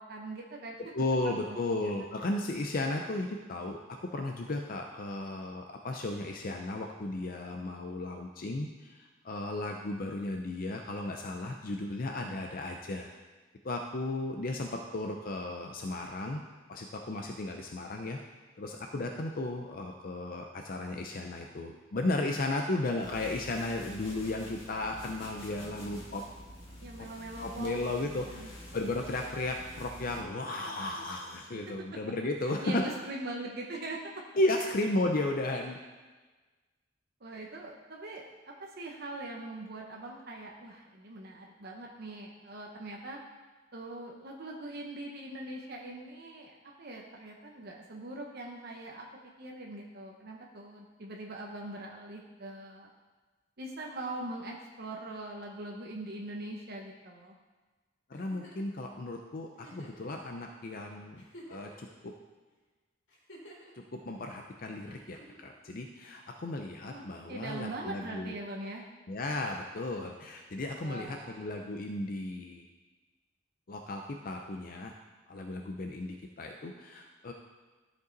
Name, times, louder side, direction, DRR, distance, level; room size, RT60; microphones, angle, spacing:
voice 1, 0.0-0.8 1.2-1.9 26.8-28.5 32.4-34.0 34.3-34.4 37.2-43.2 43.7-49.0 49.4-52.9 53.6-57.3 66.8-68.8 70.8-71.5, right 2 dB, 55° right, 0 dB, 0.9 m, -42 dB
voice 2, 0.9-3.8 4.1-13.1 13.6-16.4 16.7-18.2 18.6-26.2 27.4-32.9 34.4-35.8 58.1-61.2 61.5-62.1 64.1-68.3 69.1-72.7 73.7-74.9 75.3-77.3, left 2 dB, 45° left, 3 dB, 0.6 m, -34 dB
sound 1, 23.0-30.2, equal, 30° left, 2.0 m, -47 dB
Giggle, 58.1-58.7 59.6-60.1 60.7-60.8 61.1-61.9 63.1-63.7 64.9-65.5 66.8-67.3 68.8-68.9, right 1 dB, 65° left, 2.5 m, -52 dB
13.0 x 5.4 x 4.0 m, 1.3 s
head